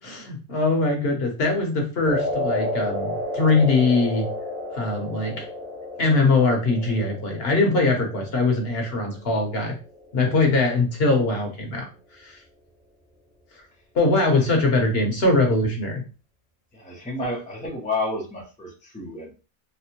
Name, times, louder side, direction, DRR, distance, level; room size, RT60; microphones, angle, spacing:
voice 1, 0.0-4.3 4.7-5.5 6.0-9.8 10.1-11.9 12.2-12.4 13.9-16.0, left 3 dB, 50° left, 2 dB, 1.0 m, -22 dB
sound 1, 2.0-10.4, left 1 dB, 45° right, 1.4 m, -32 dB
voice 2, 16.7-19.3, left 2 dB, 10° left, -1 dB, 0.3 m, -30 dB
4.1 x 2.1 x 2.8 m, 0.33 s
omnidirectional pair, 1.4 m